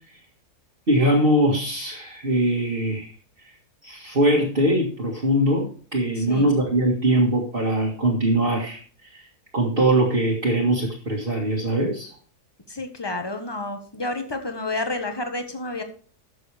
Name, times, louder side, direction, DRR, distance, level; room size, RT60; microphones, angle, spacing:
voice 1, 0.9-3.1 3.8-8.8 9.1-9.2 9.5-12.1, right 1 dB, 35° right, -4 dB, 2.1 m, -21 dB
voice 2, 6.2-6.5 12.7-15.8, left 2 dB, 15° left, 6 dB, 1.2 m, -30 dB
13.0 x 6.9 x 3.4 m, 0.43 s
omnidirectional pair, 1.7 m